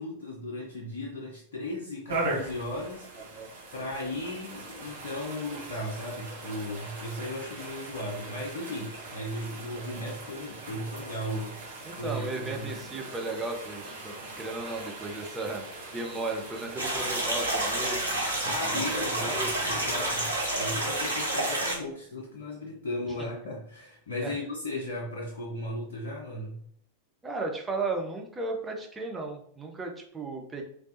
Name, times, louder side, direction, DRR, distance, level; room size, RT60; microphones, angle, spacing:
voice 1, 0.0-3.1 3.7-12.7 18.4-26.6, left 1 dB, 65° left, -3 dB, 0.6 m, -36 dB
sound 1, 2.1-20.6, right 2 dB, 55° right, 1.1 m, -40 dB
voice 2, 11.8-15.6 15.9-18.3 18.7-19.5 24.2-24.4 27.2-30.7, right 3 dB, 15° right, 2 dB, 0.7 m, -35 dB
sound 2, 16.8-21.8, right 1 dB, 80° right, 0.9 m, -29 dB
3.3 x 3.1 x 2.7 m, 0.65 s
figure-of-eight pair, 90°, 0 cm